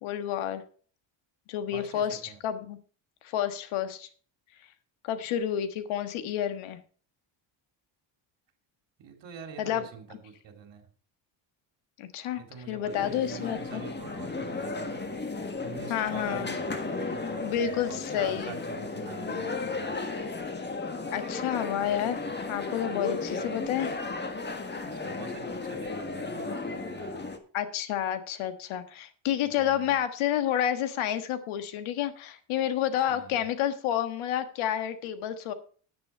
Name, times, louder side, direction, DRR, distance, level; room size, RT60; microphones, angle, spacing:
voice 1, 0.0-0.6 1.5-2.8 3.2-4.1 5.0-6.8 9.6-9.9 12.0-13.8 15.9-16.5 17.4-18.6 21.1-24.0 27.5-35.5, left 10 dB, 75° left, 10 dB, 1.5 m, -30 dB
voice 2, 1.7-2.4 9.0-10.9 12.4-19.9 24.8-27.3 29.6-29.9 33.1-33.5, right 6 dB, 60° right, 5 dB, 2.7 m, -45 dB
sound 1, 12.9-27.4, left 3 dB, 20° left, 1.5 m, -34 dB
10.0 x 9.7 x 4.4 m, 0.42 s
cardioid pair, 100°, 48 cm